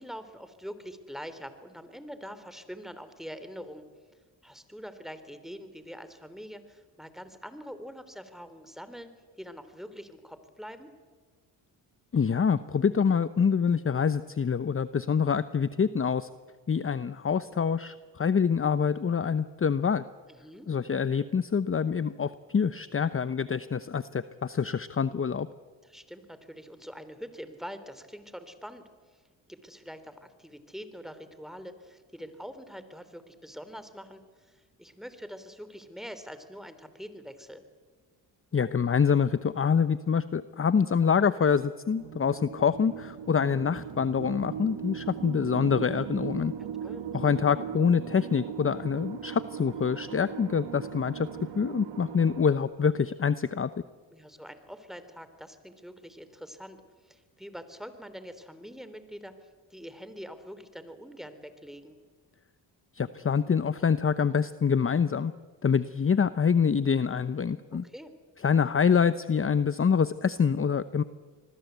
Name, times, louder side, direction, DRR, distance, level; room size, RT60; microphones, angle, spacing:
voice 1, 0.0-3.9 4.4-10.9 20.3-20.7 25.8-29.2 29.5-37.6 46.8-47.0 54.1-59.3 59.7-62.0 67.7-68.1, equal, ahead, 11 dB, 3.4 m, -44 dB
voice 2, 12.1-16.3 16.7-20.0 20.7-25.5 38.5-46.5 47.1-51.3 51.6-53.7 62.9-65.3 65.6-67.8 68.4-71.0, left 6 dB, 30° left, 14 dB, 0.9 m, -26 dB
sound 1, 42.0-52.6, right 8 dB, 80° right, 2.5 m, -38 dB
26.5 x 21.0 x 8.2 m, 1.5 s
supercardioid pair, 60°, 44 cm